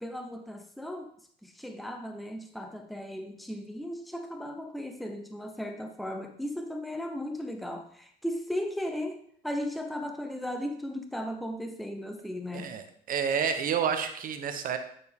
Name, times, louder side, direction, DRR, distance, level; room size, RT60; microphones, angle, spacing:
voice 1, 0.0-1.1 1.4-9.2 9.4-12.7, left 1 dB, ahead, 5 dB, 0.7 m, -36 dB
voice 2, 12.5-14.8, right 7 dB, 55° right, 8 dB, 0.9 m, -29 dB
9.6 x 4.3 x 3.5 m, 0.63 s
cardioid pair, 110°, 17 cm